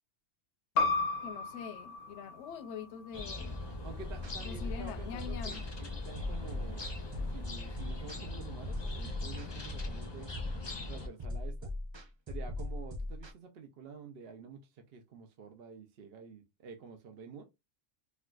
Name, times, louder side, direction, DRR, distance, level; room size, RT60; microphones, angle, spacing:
sound 1, 0.8-5.9, left 3 dB, 90° left, 1.1 m, -36 dB
voice 1, 1.2-3.6 4.4-5.6, left 8 dB, 70° left, 0.9 m, -44 dB
sound 2, 3.1-11.1, left 2 dB, 30° left, 0.6 m, -41 dB
voice 2, 3.8-10.3 10.9-11.7 12.3-17.4, right 5 dB, 60° right, 0.7 m, -49 dB
sound 3, 4.0-13.3, left 1 dB, 40° right, 0.4 m, -40 dB
4.4 x 2.3 x 2.3 m
omnidirectional pair, 1.3 m